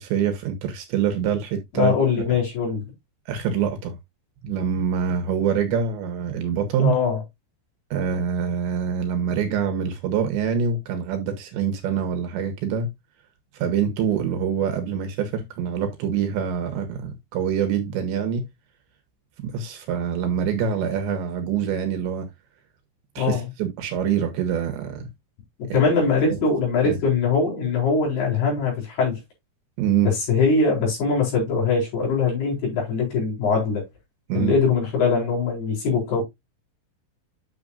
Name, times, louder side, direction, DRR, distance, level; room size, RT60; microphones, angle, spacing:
voice 1, 0.0-1.9 2.3-2.4 3.3-4.0 4.4-6.9 7.9-12.9 13.5-18.4 19.4-22.3 23.2-25.1 25.7-25.8 26.8-27.0 29.8-30.1 34.3-34.5, right 7 dB, 70° right, 3.2 m, -25 dB
voice 2, 1.7-2.8 6.8-7.2 23.2-23.5 25.7-29.2 30.0-33.8 34.3-36.3, left 5 dB, 55° left, 6.1 m, -22 dB
9.2 x 6.8 x 2.5 m
omnidirectional pair, 5.7 m